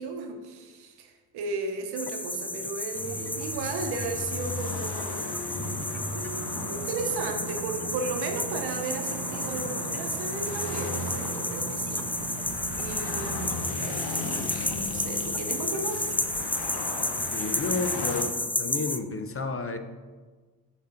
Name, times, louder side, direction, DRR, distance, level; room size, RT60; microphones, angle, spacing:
voice 1, 0.0-5.3 6.1-12.0 12.8-16.1, right 3 dB, 75° right, 5 dB, 1.0 m, -35 dB
sound 1, 2.0-19.0, left 1 dB, 5° left, 0.3 m, -32 dB
sound 2, 2.9-18.2, left 3 dB, 85° left, 0.9 m, -37 dB
sound 3, 5.5-13.5, right 9 dB, 55° right, 0.7 m, -40 dB
voice 2, 17.3-19.8, left 3 dB, 35° left, 7 dB, 0.7 m, -31 dB
7.0 x 4.6 x 3.9 m, 1.4 s
supercardioid pair, 50°, 39 cm